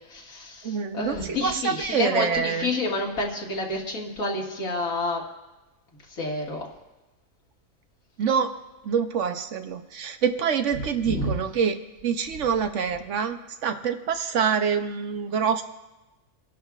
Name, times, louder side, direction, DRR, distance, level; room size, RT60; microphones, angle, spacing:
voice 1, 0.1-5.2 6.1-6.7 10.8-11.4, left 2 dB, 80° left, -1 dB, 2.3 m, -29 dB
voice 2, 0.6-2.7 8.2-8.5 8.8-11.8 12.0-15.6, right 7 dB, 65° right, 8 dB, 1.0 m, -26 dB
28.5 x 11.0 x 2.4 m, 1.1 s
omnidirectional pair, 1.4 m